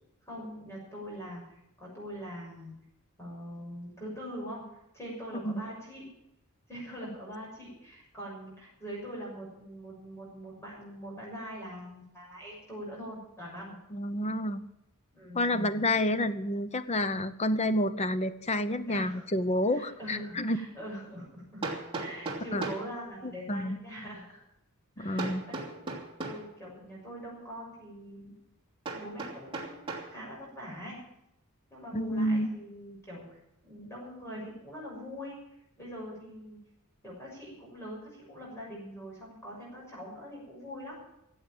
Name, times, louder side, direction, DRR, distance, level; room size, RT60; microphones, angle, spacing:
voice 1, 0.2-2.7 3.2-4.7 4.9-6.1 6.7-13.8 15.1-15.8 18.9-19.4 19.7-21.6 22.0-24.4 25.0-26.0 26.2-28.3 28.9-31.0 31.7-35.4 35.8-36.6 37.0-41.0, equal, 15° left, -5 dB, 6.5 m, -43 dB
voice 2, 13.9-14.7 15.3-20.6 22.5-22.7 23.2-23.8 25.0-25.4 31.9-32.5, left 1 dB, 30° left, 12 dB, 0.8 m, -29 dB
Hammer, 21.6-22.9 25.2-26.5 28.8-30.1, right 3 dB, 25° right, 2.8 m, -37 dB
15.0 x 8.2 x 9.1 m, 0.85 s
head